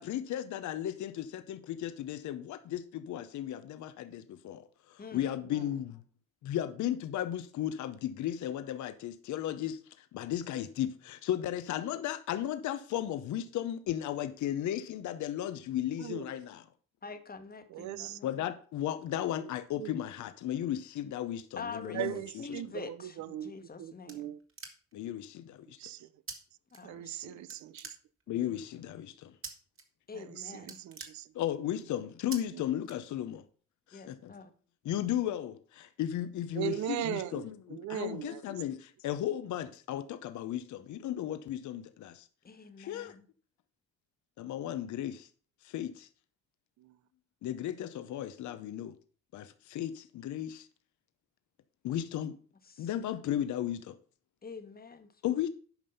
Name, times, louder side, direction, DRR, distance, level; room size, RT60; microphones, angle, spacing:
voice 1, 0.0-6.0 6.4-16.6 18.2-22.1 24.9-25.8 28.3-29.3 31.3-33.4 33.9-34.3 34.8-42.3 42.8-43.2 44.4-45.3 45.6-46.1 47.4-48.9 49.3-50.7 51.8-52.4 52.8-54.0 55.2-55.5, left 11 dB, 70° left, 0.7 m, -35 dB
voice 2, 5.5-5.8 16.0-16.4 17.7-18.2 19.4-19.5 19.8-19.9 21.9-23.5 23.8-24.4 25.8-26.1 26.8-28.0 28.3-28.6 30.1-31.3 32.5-32.6 36.5-38.4 46.8-47.0, right 13 dB, 70° right, 0.6 m, -39 dB
voice 3, 17.0-18.3 21.6-22.0 22.4-24.2 26.7-27.5 30.1-30.8 33.9-34.5 42.4-43.3 52.7-52.9 54.4-55.4, left 4 dB, 30° left, 1.2 m, -45 dB
sound 1, 23.4-25.1 26.3-26.4 26.7-27.2 27.5-28.5 29.4-29.8 30.2-30.3 30.6-31.7 32.3-32.4 32.8-33.5, right 4 dB, 45° right, 2.0 m, -46 dB
8.9 x 5.3 x 5.5 m
cardioid pair, 90°, 30 cm